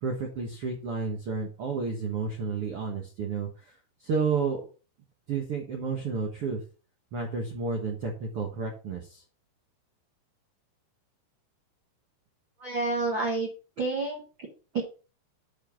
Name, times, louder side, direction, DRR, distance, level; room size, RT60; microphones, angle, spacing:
voice 1, 0.0-3.7 4.0-4.7 5.3-6.6 7.1-9.2, right 4 dB, 75° right, 1 dB, 1.3 m, -31 dB
voice 2, 12.6-13.5 13.8-14.5 14.7-14.8, right 3 dB, 50° right, -1 dB, 1.5 m, -29 dB
7.9 x 4.8 x 5.8 m, 0.36 s
omnidirectional pair, 4.6 m